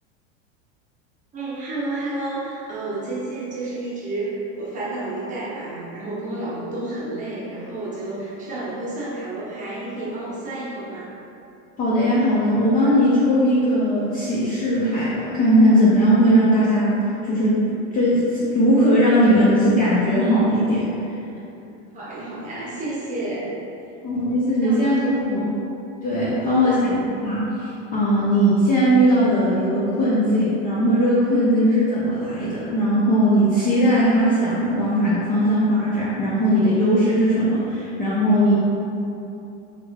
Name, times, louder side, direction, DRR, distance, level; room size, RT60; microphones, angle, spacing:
voice 1, 1.3-11.1 21.9-23.5 24.6-25.4 26.3-26.8, right 2 dB, 20° right, -8 dB, 0.8 m, -31 dB
voice 2, 11.8-17.0 17.2-17.6 17.9-20.9 24.0-25.5 26.0-38.5, equal, 25° left, -8 dB, 0.4 m, -19 dB
3.5 x 3.0 x 2.3 m, 2.8 s
supercardioid pair, 130°, 37 cm